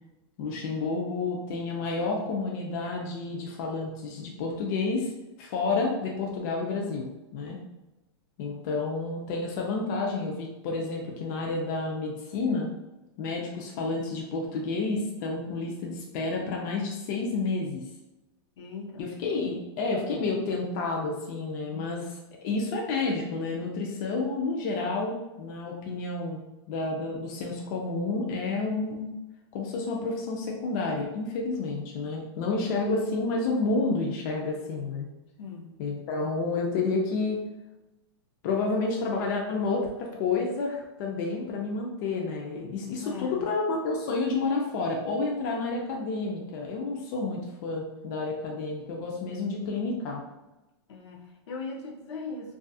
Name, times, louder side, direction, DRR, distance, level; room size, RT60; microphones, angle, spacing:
voice 1, 0.4-5.1 5.4-7.6 8.4-12.7 13.2-17.8 19.0-22.1 22.4-26.4 26.7-29.1 29.5-35.1 35.8-37.4 38.4-50.2, left 3 dB, 40° left, -1 dB, 0.4 m, -30 dB
voice 2, 18.6-19.1 21.7-22.0 35.4-35.8 43.0-43.5 49.3-49.4 50.9-52.6, left 4 dB, 80° left, 0 dB, 0.6 m, -39 dB
2.6 x 2.3 x 2.3 m, 0.99 s
supercardioid pair, 155°, 15 cm